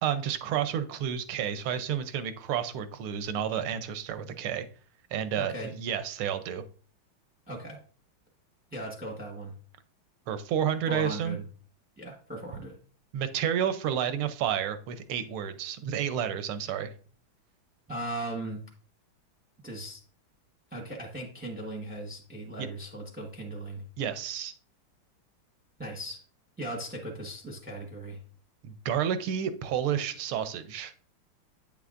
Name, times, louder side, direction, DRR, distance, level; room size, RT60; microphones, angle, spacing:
voice 1, 0.0-4.6 5.1-6.6 10.3-11.4 13.1-16.9 22.6-22.7 24.0-24.5 28.6-30.9, right 9 dB, 85° right, 10 dB, 1.6 m, -30 dB
voice 2, 5.3-5.7 7.5-7.8 8.7-9.5 10.9-11.4 12.0-12.7 17.9-18.7 19.6-20.0 20.7-23.8 25.8-26.2 26.6-28.2, right 1 dB, 5° right, 0 dB, 0.8 m, -38 dB
8.9 x 6.9 x 2.5 m, 0.41 s
omnidirectional pair, 2.3 m